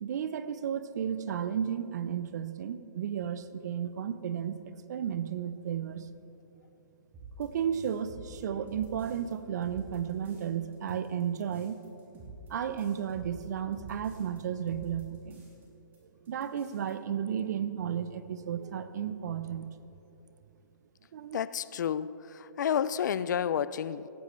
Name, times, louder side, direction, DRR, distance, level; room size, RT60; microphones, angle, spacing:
voice 1, 0.0-6.1 7.4-11.8 12.5-15.4 16.3-19.8 21.1-21.4, right 8 dB, 55° right, 12 dB, 0.8 m, -33 dB
sound 1, 7.1-9.3 9.6-10.5 10.7-14.4 14.7-15.6 15.9-16.0 16.3-16.9, right 2 dB, 20° right, 3.1 m, -48 dB
voice 2, 21.3-24.1, left 8 dB, 60° left, 17 dB, 0.5 m, -30 dB
16.5 x 15.0 x 3.2 m, 3.0 s
hypercardioid pair, 135°, 11 cm